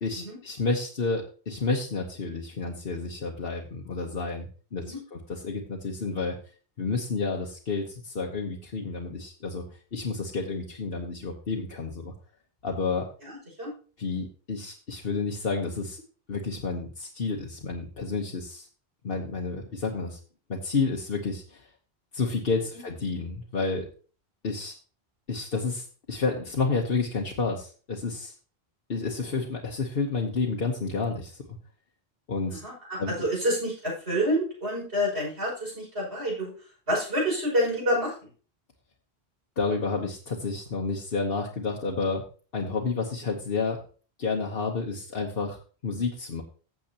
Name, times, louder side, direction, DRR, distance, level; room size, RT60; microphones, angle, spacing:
voice 1, 0.0-6.4 6.8-9.6 9.9-12.1 12.6-13.1 14.0-16.0 16.3-18.7 19.0-20.2 20.5-21.7 22.1-23.9 24.4-24.7 25.3-28.3 28.9-31.4 32.3-32.6 33.0-33.1 39.6-42.2 42.5-43.8 44.2-46.4, left 4 dB, 60° left, -1 dB, 1.3 m, -30 dB
voice 2, 13.2-13.7 32.5-36.5 36.9-38.1, equal, 70° right, -4 dB, 6.3 m, -28 dB
15.0 x 7.1 x 2.9 m, 0.39 s
omnidirectional pair, 1.1 m